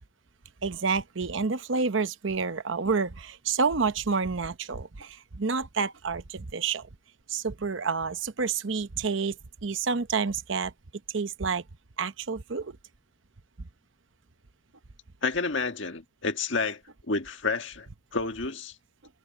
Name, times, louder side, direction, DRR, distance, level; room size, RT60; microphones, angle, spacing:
voice 1, 0.6-6.9 7.3-9.4 9.6-10.7 11.1-11.6 12.0-12.8 13.6-13.7, right 5 dB, 70° right, 0.8 m, -29 dB
voice 2, 15.2-16.8 17.1-17.9 18.1-18.7, left 4 dB, 65° left, 1.7 m, -29 dB
head